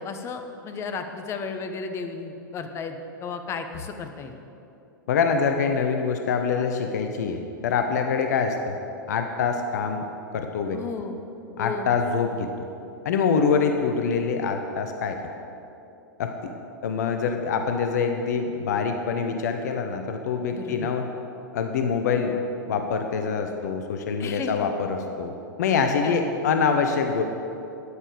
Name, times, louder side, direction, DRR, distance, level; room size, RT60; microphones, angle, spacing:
voice 1, 0.0-4.4 10.7-11.2 11.6-11.9 20.5-20.9 24.2-24.7 26.0-26.2, left 5 dB, 25° left, 7 dB, 0.9 m, -34 dB
voice 2, 5.1-8.7 9.1-10.0 10.3-10.8 11.6-12.7 13.0-15.2 16.2-16.5 16.8-21.1 21.5-22.4 22.6-25.3 25.6-27.2, left 5 dB, 55° left, 6 dB, 0.8 m, -25 dB
12.5 x 9.9 x 5.2 m, 2.8 s
figure-of-eight pair, 100°, 11 cm